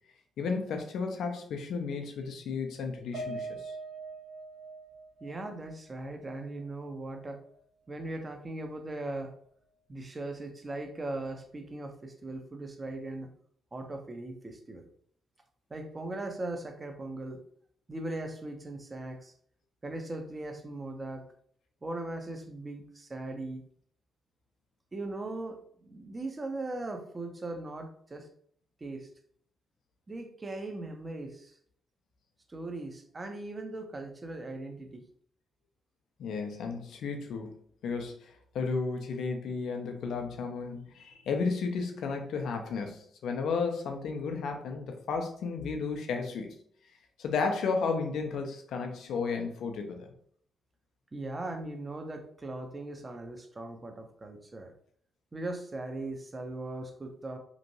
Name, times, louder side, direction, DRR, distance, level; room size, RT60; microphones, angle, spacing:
voice 1, 0.4-3.7 36.2-37.6 37.8-38.3 38.5-46.5 47.2-50.1, left 4 dB, 65° left, 4 dB, 0.5 m, -33 dB
Piano, 3.1-7.6 8.0-8.1 8.5-8.7, right 3 dB, 70° right, 0.8 m, -44 dB
voice 2, 5.2-7.4 7.9-9.3 9.9-13.3 13.7-14.8 15.7-17.4 17.9-19.3 19.8-21.3 21.8-23.6 24.9-28.3 28.8-29.1 30.1-31.6 32.5-35.0 51.1-54.7 55.3-57.4, right 2 dB, 30° right, 5 dB, 0.6 m, -39 dB
3.0 x 2.5 x 2.7 m, 0.62 s
hypercardioid pair, 40°, 0 cm